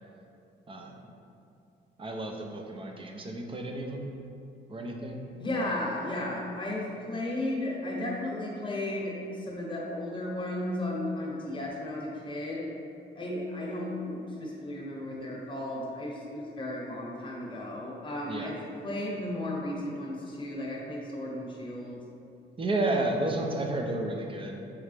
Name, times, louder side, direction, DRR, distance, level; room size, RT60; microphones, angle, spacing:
voice 1, 0.7-1.1 2.0-4.1 4.7-5.3 18.3-18.6 22.6-24.6, right 2 dB, 25° right, 2 dB, 0.6 m, -32 dB
voice 2, 5.4-12.7 13.2-22.0, left 1 dB, 25° left, -3 dB, 1.0 m, -34 dB
4.8 x 3.1 x 3.3 m, 2.6 s
cardioid pair, 90°, 20 cm